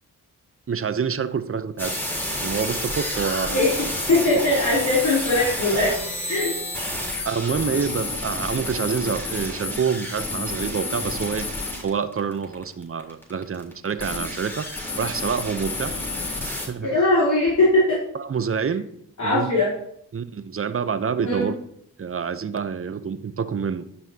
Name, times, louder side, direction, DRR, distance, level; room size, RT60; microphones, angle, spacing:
voice 1, 0.7-2.0 2.3-3.6 7.2-11.5 11.8-14.7 15.0-16.0 16.4-16.9 18.1-18.9 19.2-19.5 20.1-21.5 22.0-23.9, right 6 dB, 35° right, 12 dB, 0.8 m, -27 dB
sound 1, 1.8-16.7, left 1 dB, 5° left, 3.8 m, -30 dB
voice 2, 4.1-5.9 6.3-6.5 16.8-18.0 19.2-19.7 21.2-21.5, left 2 dB, 50° left, -8 dB, 3.4 m, -20 dB
12.0 x 5.6 x 2.9 m, 0.69 s
supercardioid pair, 50°, 37 cm